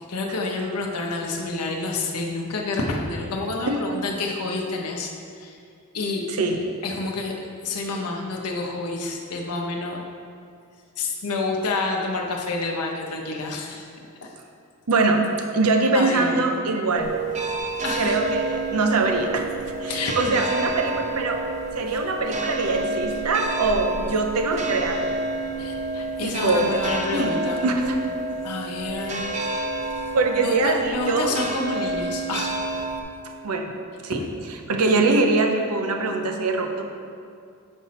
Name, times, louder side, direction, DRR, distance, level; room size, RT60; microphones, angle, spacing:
voice 1, 0.1-5.6 5.9-6.3 6.8-7.3 7.6-10.0 11.0-13.8 15.9-16.6 17.8-18.2 19.9-20.4 25.6-27.6 28.4-29.4 30.4-32.5, left 3 dB, 90° left, 0 dB, 0.7 m, -28 dB
voice 2, 6.3-6.6 14.9-15.2 15.5-17.2 17.9-19.5 19.8-21.4 21.7-25.2 26.2-26.8 27.1-28.0 30.1-31.4 33.4-33.7 34.0-36.8, right 3 dB, 80° right, 3 dB, 0.7 m, -23 dB
sound 1, 16.9-33.0, right 2 dB, 30° right, 0.6 m, -29 dB
5.3 x 4.2 x 5.7 m, 2.3 s
head